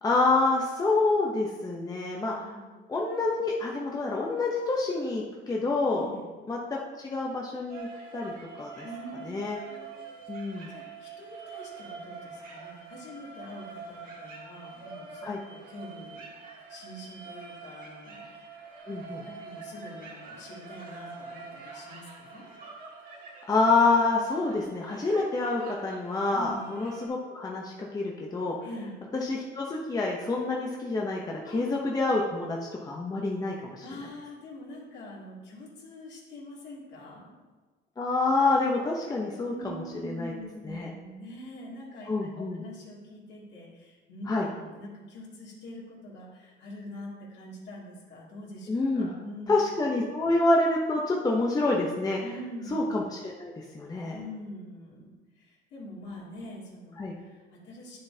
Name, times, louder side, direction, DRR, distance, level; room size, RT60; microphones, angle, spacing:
voice 1, 0.0-2.3 2.9-6.0 6.5-7.9 8.1-8.3 8.6-8.8 9.2-9.6 10.3-10.7 15.2-15.4 18.9-19.2 23.5-28.6 29.1-33.8 38.0-40.3 40.6-40.9 42.1-42.6 44.3-44.5 48.7-49.1 49.5-52.2 52.7-54.2 57.0-57.1, left 3 dB, 20° left, -2 dB, 0.7 m, -27 dB
voice 2, 2.4-2.7 5.9-6.3 8.8-10.1 10.7-16.2 16.7-18.6 19.2-22.5 26.3-26.7 28.6-29.0 31.5-31.6 33.8-37.4 39.5-42.1 42.4-49.5 52.2-52.7 54.1-58.0, left 1 dB, 60° left, -5 dB, 2.5 m, -44 dB
sound 1, 7.7-27.1, right 5 dB, 45° right, 1.8 m, -45 dB
10.5 x 6.6 x 2.8 m, 1.3 s
cardioid pair, 145°, 20 cm